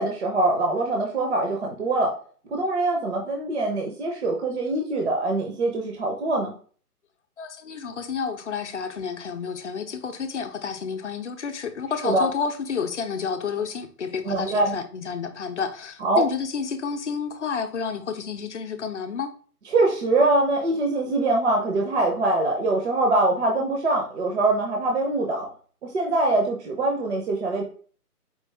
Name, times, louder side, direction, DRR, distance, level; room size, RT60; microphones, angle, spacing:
voice 1, 0.0-2.1 2.5-6.5 12.0-12.2 14.2-14.8 16.0-16.2 19.7-25.5 25.8-27.7, right 2 dB, 45° right, 0.8 m, -23 dB
voice 2, 7.4-19.3, left 6 dB, 50° left, 0.6 m, -30 dB
4.6 x 2.4 x 3.4 m
hypercardioid pair, 155°, 47 cm